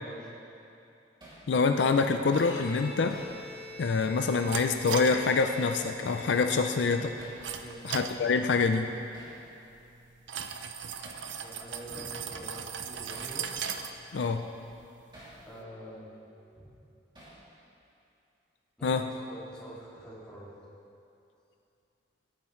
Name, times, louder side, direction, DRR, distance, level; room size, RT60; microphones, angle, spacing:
Hammer, 1.2-1.5 3.1-3.4 5.2-5.5 7.2-7.4 9.1-9.4 11.0-11.3 13.1-13.4 15.1-15.4 17.1-17.5, right 1 dB, 25° right, 2.7 m, -50 dB
voice 1, 1.5-3.2 3.8-7.1 7.8-8.9 14.1-14.4 18.8-19.1, left 4 dB, 70° left, 6 dB, 0.4 m, -26 dB
Bowed string instrument, 2.2-7.5, left 2 dB, 90° left, 1.3 m, -45 dB
sound 1, 2.3-15.6, right 7 dB, 75° right, 0.6 m, -41 dB
voice 2, 7.6-7.9 11.4-13.5 15.4-16.8 18.8-20.5, right 1 dB, 5° left, -9 dB, 2.4 m, -46 dB
17.5 x 8.9 x 3.2 m, 2.7 s
head